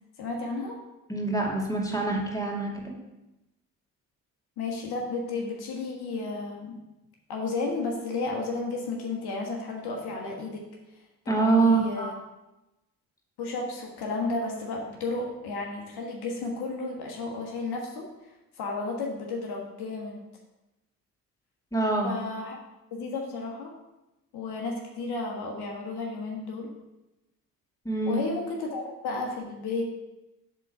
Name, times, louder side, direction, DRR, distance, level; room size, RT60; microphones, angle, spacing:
voice 1, 0.2-0.8 4.6-6.8 7.3-10.7 11.2-12.1 13.4-18.1 18.6-20.2 22.0-22.6 22.9-23.7 24.3-26.7 28.0-29.8, left 3 dB, 65° left, 0 dB, 1.5 m, -33 dB
voice 2, 1.1-3.0 11.3-12.2 21.7-22.1 27.8-28.2, right 3 dB, 10° left, -1 dB, 2.2 m, -25 dB
7.4 x 3.9 x 6.7 m, 0.98 s
hypercardioid pair, 50°, 41 cm